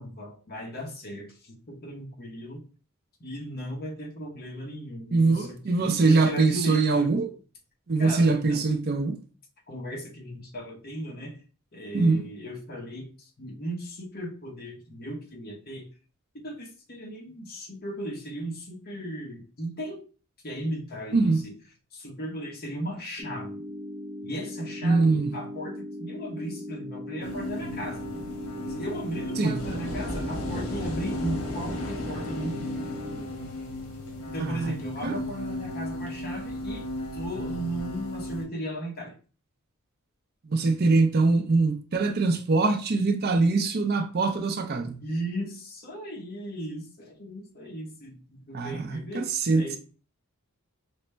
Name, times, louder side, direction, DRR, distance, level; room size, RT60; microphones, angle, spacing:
voice 1, 0.0-2.6 3.2-7.1 8.0-8.7 9.7-11.4 11.7-15.9 16.4-20.0 20.4-21.5 21.9-23.6 24.2-28.0 28.7-32.7 34.3-36.9 37.1-39.1 45.0-49.3 49.6-49.8, equal, 45° left, 0.9 m, -36 dB
voice 2, 5.1-7.3 7.9-9.2 11.9-12.2 21.1-21.4 24.8-25.3 29.4-29.7 34.4-34.7 35.0-35.2 40.5-45.0 48.5-49.8, right 3 dB, 45° right, 0.5 m, -23 dB
sound 1, 23.2-33.2, left 1 dB, 20° right, 0.9 m, -39 dB
sound 2, 27.2-38.4, left 1 dB, 75° left, 1.3 m, -35 dB
5.1 x 2.1 x 3.3 m
head